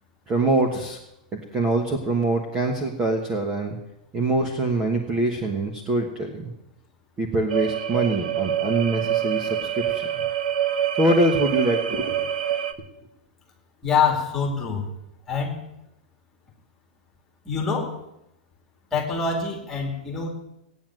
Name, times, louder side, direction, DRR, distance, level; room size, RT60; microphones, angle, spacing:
voice 1, 0.3-1.0 1.3-3.8 4.1-6.5 7.2-10.2 11.0-12.2, right 2 dB, 15° right, 3 dB, 1.2 m, -24 dB
sound 1, 7.5-12.7, right 10 dB, 65° right, 1.1 m, -26 dB
voice 2, 13.8-14.9 15.3-15.6 17.4-18.0 18.9-20.3, left 5 dB, 5° left, 0 dB, 2.5 m, -25 dB
17.0 x 9.2 x 7.6 m, 0.87 s
supercardioid pair, 180°, 5 cm